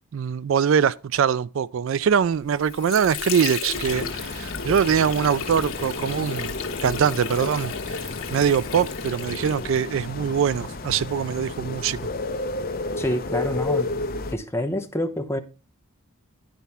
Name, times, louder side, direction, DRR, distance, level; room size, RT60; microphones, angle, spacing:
voice 1, 0.1-6.5 6.8-8.0 8.3-12.0, right 7 dB, 65° right, 0.3 m, -23 dB
Water / Sink (filling or washing), 2.3-10.0, left 6 dB, 75° left, 1.3 m, -34 dB
sound 1, 3.7-14.3, left 2 dB, 45° left, 0.8 m, -32 dB
voice 2, 13.0-13.9 14.3-15.4, left 1 dB, 10° left, 0.8 m, -27 dB
10.5 x 4.6 x 5.5 m
head